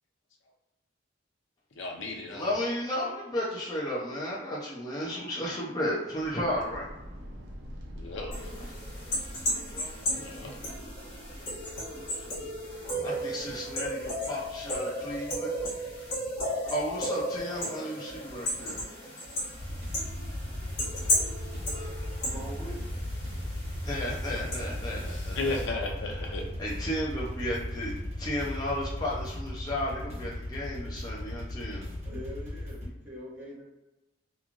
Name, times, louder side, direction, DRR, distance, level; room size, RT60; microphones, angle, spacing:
voice 1, 1.8-2.5 7.9-8.4 10.1-10.5 20.3-20.4 21.7-22.1 25.1-26.5, left 2 dB, 75° left, 1 dB, 0.6 m, -35 dB
voice 2, 2.3-6.9 8.9-9.1 9.4-10.1 13.0-15.6 16.7-18.9 23.8-25.6 26.0-26.3 26.6-31.9, equal, 20° left, -6 dB, 0.5 m, -34 dB
sound 1, 6.1-13.7, equal, 60° right, 0.5 m, -46 dB
sound 2, 8.3-25.6, equal, 50° left, 1.2 m, -34 dB
sound 3, 19.6-32.9, left 1 dB, 35° right, 1.1 m, -36 dB
voice 3, 22.2-22.9 32.0-33.6, equal, 10° right, -10 dB, 1.0 m, -42 dB
3.0 x 2.3 x 2.4 m, 0.99 s
head